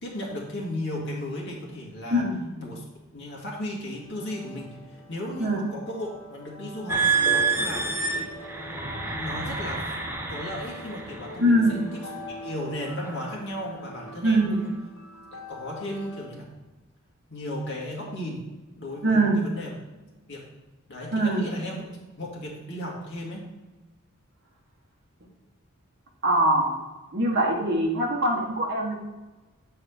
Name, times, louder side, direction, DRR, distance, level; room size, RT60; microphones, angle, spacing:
voice 1, 0.0-2.2 2.6-2.8 3.1-8.3 9.1-9.9 10.3-14.7 15.3-16.5 17.3-18.4 18.8-19.7 20.3-20.4 20.9-21.9 22.2-23.5, left 1 dB, 55° left, -3 dB, 1.9 m, -35 dB
sound 1, 4.0-16.4, equal, 80° left, 1.3 m, -44 dB
sound 2, 6.9-11.4 12.0-12.3 12.9-13.2, right 4 dB, 10° right, 0.7 m, -28 dB
voice 2, 11.4-11.9 14.2-14.6 19.0-19.4 21.1-21.5 26.2-26.7 27.1-28.9, right 1 dB, 55° right, -1 dB, 1.5 m, -22 dB
8.1 x 4.7 x 4.4 m, 1.2 s
head